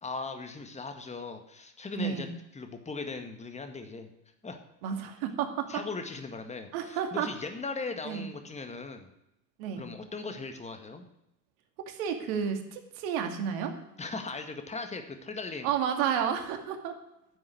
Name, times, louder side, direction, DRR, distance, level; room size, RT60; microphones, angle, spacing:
voice 1, 0.0-4.1 4.4-4.6 5.7-9.1 9.8-11.0 14.0-15.7, left 3 dB, 15° left, 6 dB, 1.8 m, -38 dB
voice 2, 2.0-2.3 4.8-5.7 6.7-7.3 8.1-8.3 9.6-9.8 11.9-13.7 15.6-16.9, right 8 dB, 55° right, 6 dB, 2.4 m, -31 dB
10.5 x 7.5 x 9.4 m, 0.84 s
hypercardioid pair, 100°, 50 cm